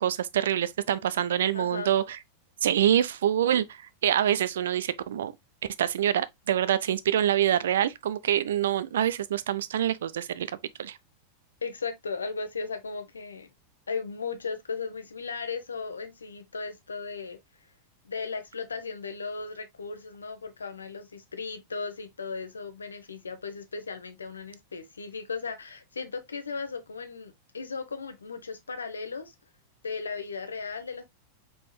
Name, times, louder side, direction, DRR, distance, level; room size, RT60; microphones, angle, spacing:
voice 1, 0.0-2.2 2.6-5.3 5.8-10.5 10.8-11.0, right 10 dB, 60° right, 0.4 m, -26 dB
voice 2, 1.5-1.9 11.6-13.5 13.9-17.4 18.0-29.3 29.8-31.0, left 4 dB, 75° left, 0.8 m, -36 dB
4.9 x 3.9 x 2.2 m
figure-of-eight pair, 90°, 0 cm